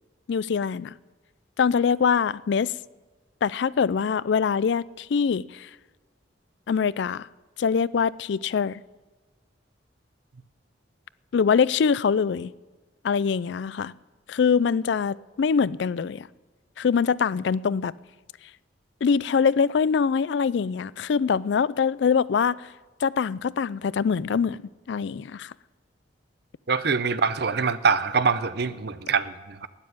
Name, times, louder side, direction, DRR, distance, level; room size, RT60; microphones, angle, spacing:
voice 1, 0.3-0.9 1.6-2.7 3.4-5.7 6.7-7.3 7.6-8.8 11.3-12.5 13.0-13.9 14.3-16.3 16.8-17.9 19.0-22.7 23.0-24.6 24.9-25.5, left 6 dB, 65° left, 0.4 m, -23 dB
voice 2, 26.7-29.7, right 5 dB, 55° right, 0.6 m, -24 dB
12.5 x 9.4 x 9.4 m
head